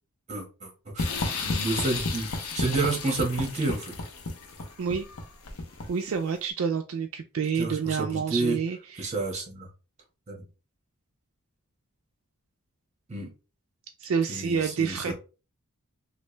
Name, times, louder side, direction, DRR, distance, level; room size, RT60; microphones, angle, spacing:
voice 1, 0.3-0.7 0.9-1.1 1.4-3.9 7.6-8.6 9.0-9.7 10.3-10.4 13.1-13.3 14.3-15.1, right 3 dB, 30° right, 0 dB, 1.2 m, -30 dB
sound 1, 1.0-6.1, left 3 dB, 75° left, 0.7 m, -32 dB
voice 2, 5.9-9.1 14.0-15.1, right 6 dB, 60° right, 6 dB, 0.3 m, -28 dB
3.2 x 2.5 x 3.1 m, 0.33 s
head